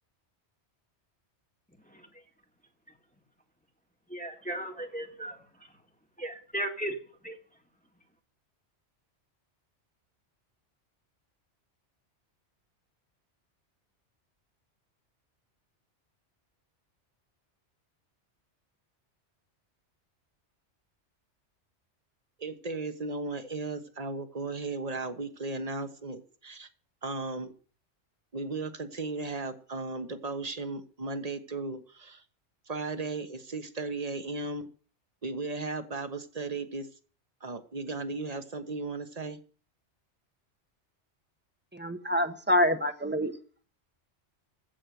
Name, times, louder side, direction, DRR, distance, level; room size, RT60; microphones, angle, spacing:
voice 1, 4.1-5.4 6.2-7.0 7.2-7.4, right 1 dB, 5° left, 3 dB, 1.7 m, -35 dB
voice 2, 22.4-26.7 27.0-27.5 28.3-32.2 32.7-34.7 35.2-36.9 37.4-39.4, right 3 dB, 35° right, 8 dB, 1.3 m, -36 dB
voice 3, 41.7-43.3, left 1 dB, 10° right, 8 dB, 1.1 m, -26 dB
15.5 x 6.5 x 7.8 m, 0.43 s
omnidirectional pair, 1.2 m